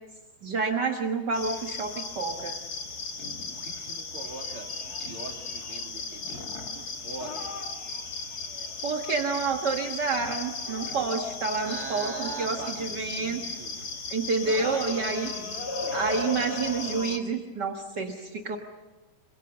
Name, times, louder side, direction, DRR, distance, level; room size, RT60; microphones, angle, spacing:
voice 1, 0.4-2.6 8.8-13.5 14.1-15.3 15.9-18.6, right 4 dB, 60° right, 3 dB, 1.0 m, -29 dB
sound 1, 1.3-17.2, left 4 dB, 35° left, 1.9 m, -36 dB
voice 2, 3.5-7.5 11.6-13.8 14.4-16.0 16.5-17.0, right 4 dB, 40° right, 2 dB, 3.2 m, -43 dB
27.5 x 24.5 x 6.8 m, 1.1 s
omnidirectional pair, 4.2 m